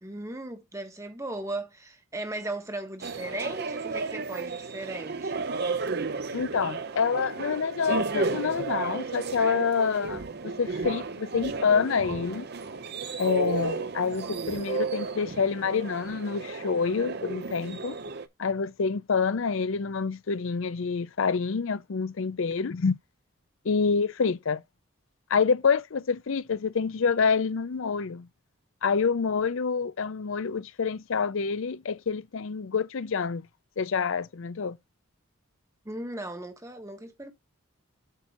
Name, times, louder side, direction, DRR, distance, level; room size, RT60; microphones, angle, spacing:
voice 1, 0.0-5.5 35.8-37.3, right 2 dB, 15° right, 1.2 m, -37 dB
sound 1, 3.0-18.3, right 4 dB, 45° right, 0.6 m, -33 dB
voice 2, 6.3-12.5 13.2-18.0 18.4-22.9 23.6-24.6 25.3-28.3 28.8-33.5 33.8-34.8, left 5 dB, 60° left, 0.5 m, -27 dB
8.2 x 2.8 x 5.9 m
head